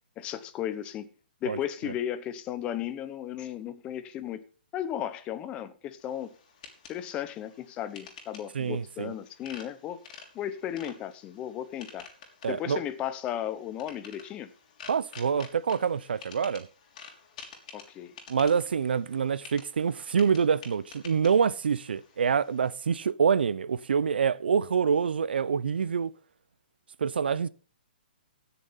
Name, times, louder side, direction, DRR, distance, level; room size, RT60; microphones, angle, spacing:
voice 1, 0.2-1.1 1.4-4.4 4.7-6.3 6.9-10.0 10.3-12.1 12.5-14.5 17.7-18.1, left 10 dB, 20° left, 1.0 m, -35 dB
sound 1, 6.0-22.8, left 5 dB, 45° left, 3.6 m, -50 dB
voice 2, 8.5-9.1 12.4-12.8 14.9-16.7 18.3-26.1 27.0-27.5, right 6 dB, 80° right, 0.8 m, -26 dB
16.0 x 7.0 x 5.7 m
hypercardioid pair, 155°, 5 cm